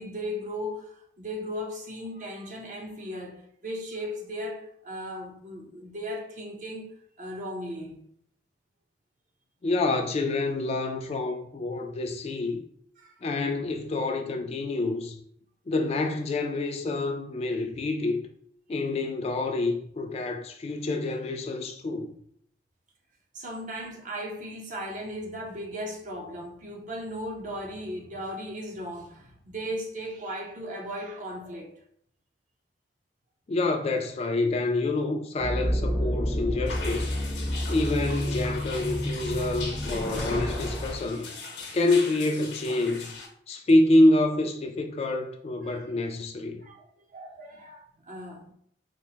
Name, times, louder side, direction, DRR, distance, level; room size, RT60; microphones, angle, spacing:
voice 1, 0.0-8.0 13.0-13.1 23.3-31.8 45.6-45.9 46.6-46.9 47.1-48.5, equal, 45° right, 0.6 m, -37 dB
voice 2, 9.6-12.6 13.2-15.2 15.7-18.2 18.7-22.1 33.5-37.1 37.7-41.3 41.7-43.1 43.5-46.6, left 2 dB, 35° left, 0.3 m, -27 dB
sound 1, 35.4-41.0, equal, 5° right, 0.6 m, -30 dB
sound 2, 36.7-43.3, left 3 dB, 75° left, 0.8 m, -40 dB
4.4 x 2.0 x 2.7 m
head